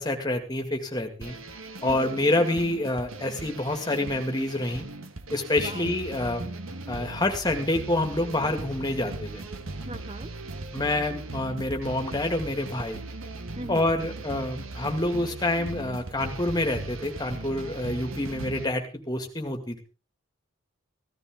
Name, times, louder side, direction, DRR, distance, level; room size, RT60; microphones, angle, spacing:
voice 1, 0.0-1.4 1.8-4.8 5.3-6.5 6.9-9.4 10.7-13.0 13.7-19.8, left 1 dB, 20° left, 4 dB, 2.1 m, -27 dB
sound 1, 1.2-18.7, right 2 dB, 75° right, 1.3 m, -38 dB
voice 2, 1.8-2.3 5.6-5.9 9.8-10.3 13.6-13.9, right 2 dB, 25° right, 11 dB, 0.6 m, -39 dB
15.5 x 14.0 x 3.7 m, 0.33 s
head